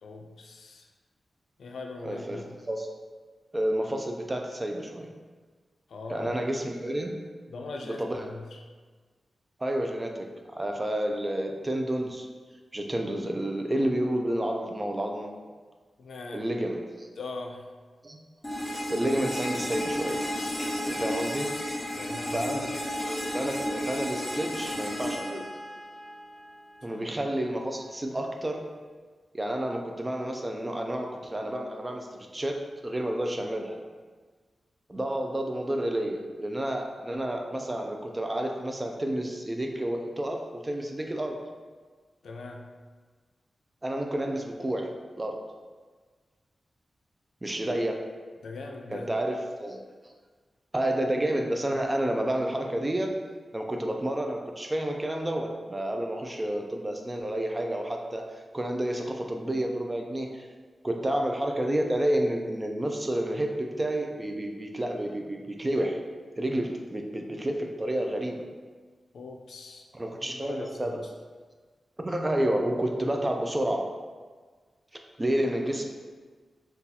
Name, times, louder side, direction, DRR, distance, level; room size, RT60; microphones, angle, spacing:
voice 1, 0.0-0.9 1.6-2.5 5.9-6.3 7.5-8.6 16.0-16.4 17.2-17.6 21.9-22.7 26.9-27.0 42.2-42.7 48.4-49.1 69.1-69.9 70.3-71.0, left 3 dB, 90° left, 2 dB, 0.3 m, -40 dB
voice 2, 2.0-2.9 3.5-5.1 6.1-7.2 7.8-8.2 9.6-12.3 12.7-15.3 16.3-17.1 18.0-18.2 18.9-20.2 20.8-21.5 22.3-25.4 26.8-28.6 29.3-33.8 34.9-41.4 43.8-44.9 45.2-45.4 47.4-48.0 48.9-50.1 50.7-53.1 53.5-58.2 58.5-60.5 60.8-66.0 66.4-68.4 69.9-71.0 72.0-73.9 75.2-75.9, right 1 dB, 20° right, 2 dB, 0.3 m, -30 dB
sound 1, 18.4-26.4, left 1 dB, 15° left, 0.8 m, -33 dB
2.7 x 2.3 x 3.9 m, 1.5 s
wide cardioid pair, 145°, 0 cm